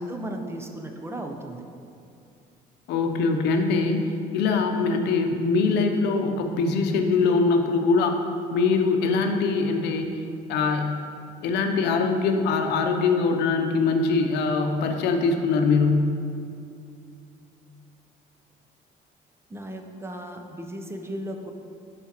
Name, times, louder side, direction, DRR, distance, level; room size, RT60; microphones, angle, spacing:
voice 1, 0.1-1.6 19.5-21.5, right 1 dB, 15° right, 3 dB, 0.6 m, -35 dB
voice 2, 2.9-4.0 4.3-8.2 8.5-10.1 10.5-10.9 11.4-16.1, left 4 dB, 80° left, 5 dB, 0.7 m, -22 dB
10.5 x 4.9 x 2.9 m, 2.5 s
cardioid pair, 110°, 17 cm